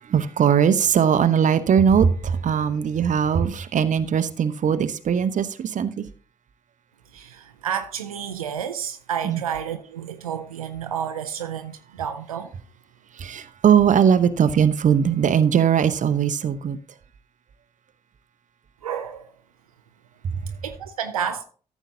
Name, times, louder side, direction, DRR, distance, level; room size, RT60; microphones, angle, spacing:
voice 1, 0.0-6.1 9.2-9.4 13.1-16.8 20.2-20.4, right 7 dB, 45° right, 0.8 m, -20 dB
voice 2, 7.1-12.5 18.8-19.3 20.6-21.4, right 8 dB, 90° right, 0.5 m, -30 dB
14.0 x 7.1 x 2.7 m
figure-of-eight pair, 40°, 18 cm